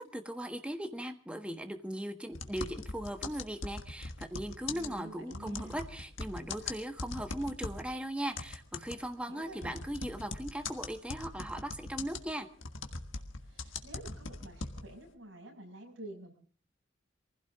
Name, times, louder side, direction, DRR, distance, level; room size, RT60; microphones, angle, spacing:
voice 1, 0.0-12.5, right 1 dB, 5° right, 6 dB, 1.4 m, -38 dB
sound 1, 2.3-7.9 8.3-15.1, left 3 dB, 70° left, 1.6 m, -40 dB
voice 2, 4.7-5.8 9.3-9.7 13.4-16.3, right 1 dB, 65° right, 2 dB, 6.1 m, -49 dB
23.5 x 16.0 x 3.7 m, 0.42 s
head